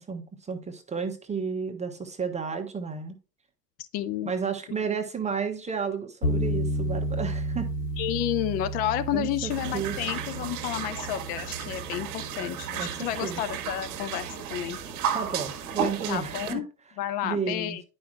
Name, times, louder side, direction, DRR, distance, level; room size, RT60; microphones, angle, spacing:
voice 1, 0.0-3.2 4.2-7.7 9.1-10.0 12.7-13.4 15.1-16.6 17.2-17.8, right 6 dB, 15° right, 1.3 m, -32 dB
voice 2, 3.9-4.3 8.0-14.8 16.1-16.7 17.0-17.8, left 12 dB, 20° left, 0.4 m, -31 dB
sound 1, 6.2-14.4, right 1 dB, 70° left, 1.4 m, -33 dB
sound 2, 9.5-16.5, right 8 dB, 40° right, 1.7 m, -34 dB
11.0 x 5.4 x 2.3 m
figure-of-eight pair, 80°, 49 cm